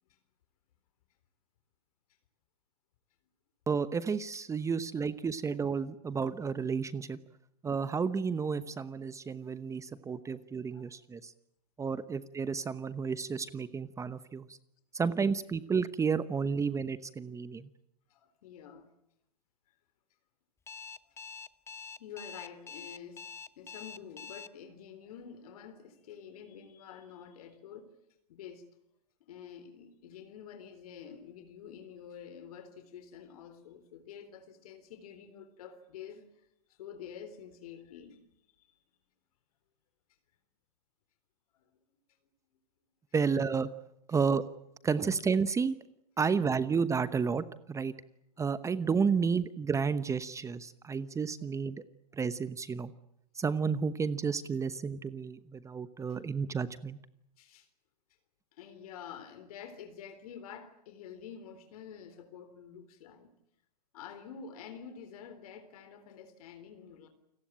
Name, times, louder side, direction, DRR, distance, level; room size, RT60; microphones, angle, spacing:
voice 1, 3.7-7.2 7.6-11.3 11.8-14.6 14.9-17.7 43.1-43.7 44.1-44.4 44.8-45.7 46.2-47.9 48.4-51.8 52.1-52.9 53.4-57.0, right 5 dB, 15° right, 1.0 m, -31 dB
voice 2, 18.1-18.9 19.7-19.8 21.0-21.2 22.0-23.3 23.6-27.9 28.3-28.7 29.2-38.2 38.6-38.7 41.5-41.8 48.4-48.5 56.1-56.2 57.4-57.7 58.6-63.3 63.9-67.1, left 8 dB, 65° left, 3.7 m, -48 dB
Alarm, 20.7-24.5, left 6 dB, 15° left, 1.0 m, -45 dB
29.0 x 18.5 x 8.9 m
hypercardioid pair, 110°, 20 cm